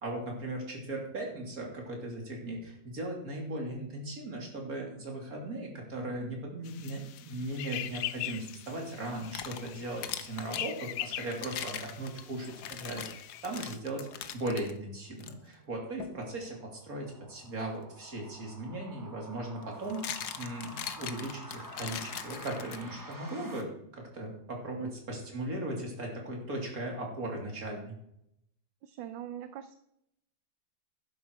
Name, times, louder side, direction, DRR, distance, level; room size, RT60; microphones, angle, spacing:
voice 1, 0.0-14.1 14.3-20.1 20.4-27.9, right 1 dB, 50° right, 0 dB, 3.3 m, -38 dB
sound 1, 6.6-13.8, left 12 dB, 80° left, 0.7 m, -42 dB
sound 2, 9.0-10.7 11.3-14.7 15.2-15.3 16.0-16.2 18.3-18.4 19.6-23.1, left 9 dB, 65° left, 1.3 m, -41 dB
sound 3, 14.9-23.6, right 1 dB, 15° right, 1.0 m, -50 dB
voice 2, 28.8-29.8, right 10 dB, 80° right, 11 dB, 1.4 m, -42 dB
11.5 x 10.0 x 4.7 m, 0.77 s
omnidirectional pair, 2.0 m